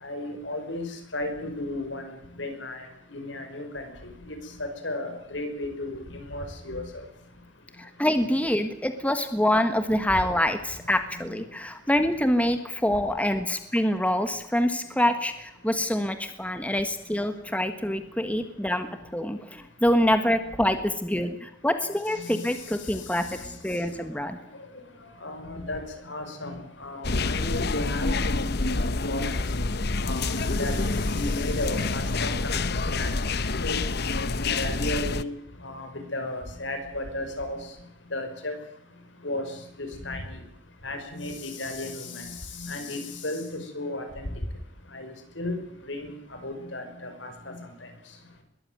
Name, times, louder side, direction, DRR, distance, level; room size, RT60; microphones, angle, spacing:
voice 1, 0.0-3.9 4.3-6.8 22.1-22.4 23.2-23.4 25.2-29.3 30.0-33.1 33.4-33.9 34.5-35.3 35.6-37.6 38.1-38.6 39.2-39.5 39.8-40.3 40.8-44.3 44.9-45.1 45.4-45.6 45.9-46.2 46.4-47.5, left 2 dB, 70° left, 7 dB, 5.5 m, -34 dB
voice 2, 7.8-18.9 19.1-24.4, left 1 dB, 5° left, 8 dB, 1.5 m, -26 dB
sound 1, 27.0-35.2, left 3 dB, 55° left, 1.0 m, -27 dB
22.0 x 14.0 x 9.4 m, 0.81 s
head